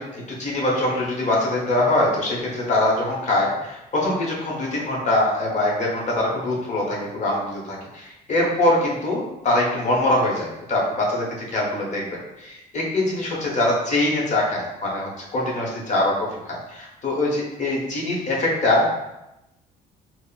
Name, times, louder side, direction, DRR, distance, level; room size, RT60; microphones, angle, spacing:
voice 1, 0.0-12.1 12.4-18.9, left 1 dB, 45° left, -3 dB, 0.9 m, -23 dB
3.6 x 2.0 x 2.3 m, 0.92 s
cardioid pair, 110°, 17 cm